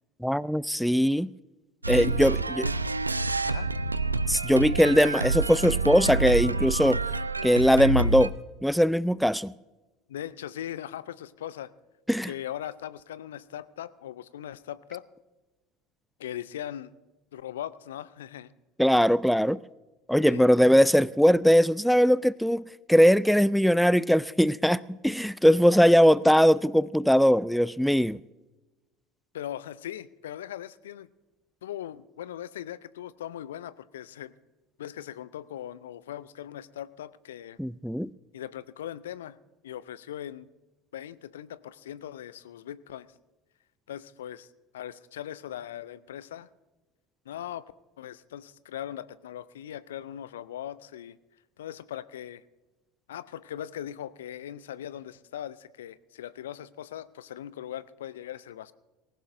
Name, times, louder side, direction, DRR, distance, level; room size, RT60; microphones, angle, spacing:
voice 1, 0.2-1.3 1.9-2.7 4.3-7.0 7.4-8.3 8.6-9.5 12.1-12.3 18.8-19.6 20.1-28.2 37.6-38.1, equal, ahead, 0.3 m, -21 dB
sound 1, 1.8-8.3, right 3 dB, 85° right, 0.4 m, -28 dB
voice 2, 1.9-2.8 3.4-3.7 10.1-11.7 12.2-15.0 16.2-16.9 17.3-18.5 20.2-20.6 29.3-31.1 31.6-34.4 34.8-37.6 38.3-39.4 39.6-40.5 40.9-43.1 43.9-44.5 44.7-46.5 47.3-51.2 51.6-52.4 53.1-58.7, left 11 dB, 70° left, 0.5 m, -39 dB
19.0 x 17.0 x 2.6 m
figure-of-eight pair, 70°, 0 cm